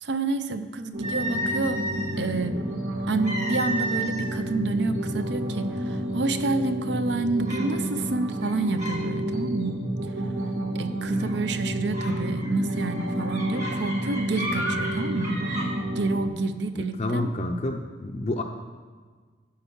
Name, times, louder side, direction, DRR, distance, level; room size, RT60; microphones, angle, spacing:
voice 1, 0.0-1.8 2.2-2.6 3.1-9.8 10.7-15.4 16.0-17.4, right 3 dB, 65° right, 10 dB, 0.6 m, -28 dB
sound 1, 0.9-16.3, right 1 dB, 85° right, 1.4 m, -30 dB
sound 2, 1.0-2.2 3.2-4.4 4.7-5.0 5.6-5.7 6.2-6.7 7.5-7.7 8.3-9.0 9.3-9.7 11.1-11.4 11.9-15.7, right 1 dB, 40° right, 1.7 m, -33 dB
voice 2, 16.7-18.4, left 2 dB, 35° left, 1 dB, 0.5 m, -29 dB
11.0 x 4.6 x 7.0 m, 1.5 s
head